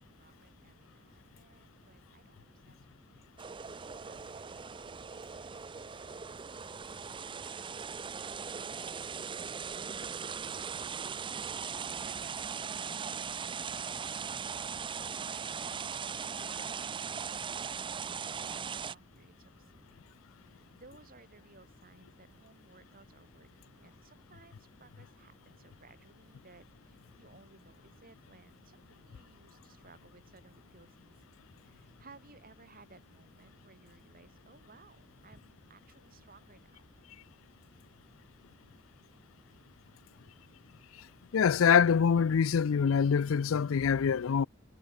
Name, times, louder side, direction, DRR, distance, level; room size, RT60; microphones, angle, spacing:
voice 1, 0.0-6.8 7.1-20.0 20.4-31.2 31.6-37.0, right 3 dB, 45° right, 4.0 m, -61 dB
sound 1, 3.4-18.9, right 6 dB, 25° right, 0.5 m, -39 dB
voice 2, 41.3-44.5, left 7 dB, 80° left, 0.4 m, -25 dB
head